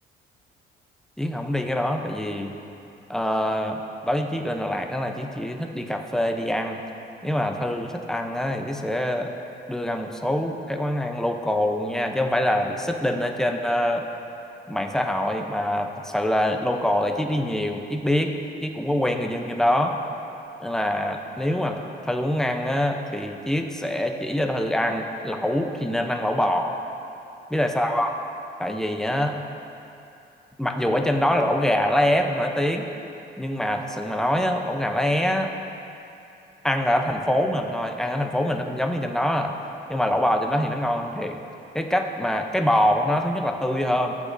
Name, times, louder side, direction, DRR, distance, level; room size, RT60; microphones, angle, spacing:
voice 1, 1.2-2.6 3.1-6.8 7.2-9.3 9.7-14.0 14.7-18.4 18.6-20.0 20.6-26.7 27.5-28.3 28.6-29.4 30.6-32.9 33.4-35.5 36.6-39.6 39.9-41.4 41.7-44.1, left 1 dB, 5° left, 3 dB, 0.7 m, -24 dB
14.5 x 7.8 x 2.7 m, 2.8 s
cardioid pair, 90°, 20 cm